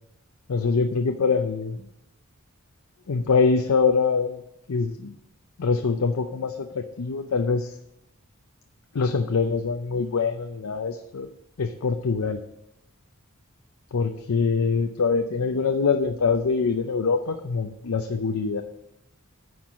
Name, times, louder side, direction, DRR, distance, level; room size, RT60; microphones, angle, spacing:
voice 1, 0.5-1.8 3.1-4.4 4.7-5.1 5.6-7.8 8.9-11.3 11.6-12.4 13.9-18.6, left 5 dB, 75° left, 6 dB, 0.6 m, -24 dB
9.3 x 4.7 x 7.3 m, 0.84 s
head